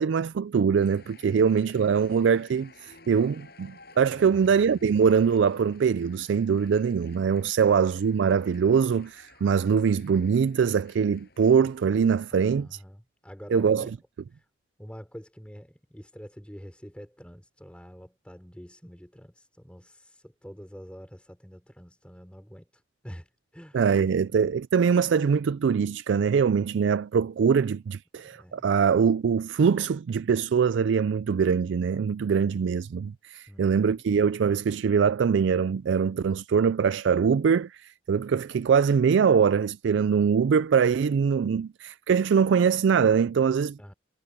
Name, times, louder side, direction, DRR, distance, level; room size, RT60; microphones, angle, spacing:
voice 1, 0.0-12.8 13.5-13.9 23.7-43.9, right 6 dB, 75° right, 0.3 m, -23 dB
sound 1, 0.7-12.6, left 3 dB, 55° left, 6.3 m, -54 dB
voice 2, 4.1-4.5 12.3-14.0 14.3-14.4 14.8-24.1 28.2-28.7 33.5-34.0 43.8-43.9, equal, 5° left, 5.7 m, -46 dB
head